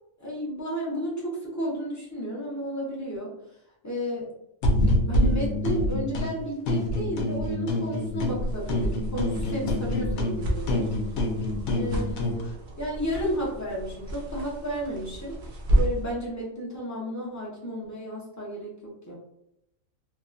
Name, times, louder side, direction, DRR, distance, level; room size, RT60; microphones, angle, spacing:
voice 1, 0.2-3.3 3.8-4.3 5.1-10.9 11.7-12.5 12.8-15.4 15.7-19.1, equal, 20° left, -5 dB, 0.5 m, -32 dB
sound 1, 4.6-6.3 6.7-8.4 8.7-12.4, left 1 dB, 85° left, 1.0 m, -26 dB
sound 2, 8.1-16.1, right 1 dB, 55° right, 0.6 m, -31 dB
2.8 x 2.2 x 2.4 m, 0.80 s
omnidirectional pair, 1.4 m